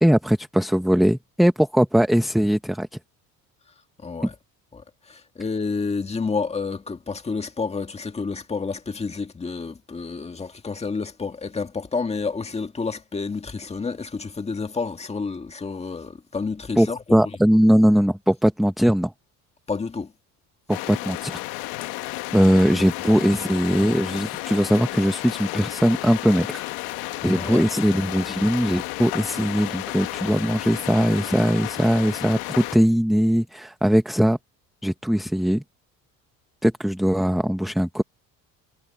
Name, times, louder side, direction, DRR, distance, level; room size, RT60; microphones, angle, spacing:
voice 1, 0.0-2.9 16.8-19.1 20.7-21.4 22.3-26.6 27.2-34.4 34.8-35.6 36.6-38.0, equal, ahead, 0.7 m, -20 dB
voice 2, 4.0-4.3 4.7-17.2 19.7-20.1 27.2-27.7, left 4 dB, 15° left, 1.9 m, -30 dB
sound 1, 20.7-32.8, left 19 dB, 90° left, 1.5 m, -32 dB
cardioid pair, 140°, 36 cm